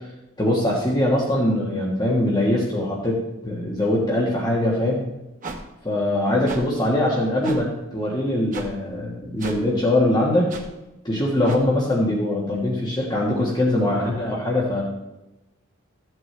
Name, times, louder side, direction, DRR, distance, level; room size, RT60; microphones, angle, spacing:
voice 1, 0.4-5.1 5.8-10.5 11.0-14.8, left 1 dB, 20° left, -3 dB, 1.5 m, -22 dB
sound 1, 5.4-5.6 6.5-6.6 7.4-7.6 8.5-8.7 9.4-9.6 10.5-10.6 11.4-11.6, right 3 dB, 40° right, 1.2 m, -34 dB
15.0 x 7.8 x 3.3 m, 0.97 s
head